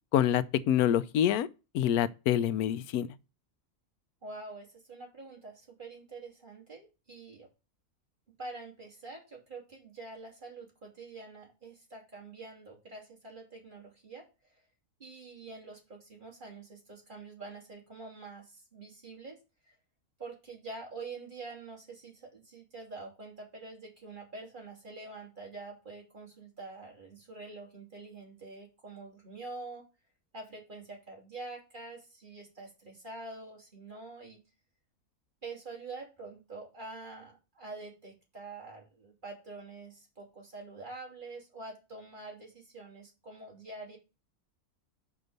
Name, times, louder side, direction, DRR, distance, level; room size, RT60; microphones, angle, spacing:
voice 1, 0.1-1.5 1.7-3.1, left 10 dB, 85° left, 1.1 m, -26 dB
voice 2, 4.2-7.5 8.4-14.2 15.0-19.4 19.7-19.8 20.2-29.8 30.3-34.4 35.4-44.0, right 3 dB, 35° right, 3.2 m, -46 dB
6.1 x 5.4 x 6.4 m
omnidirectional pair, 1.5 m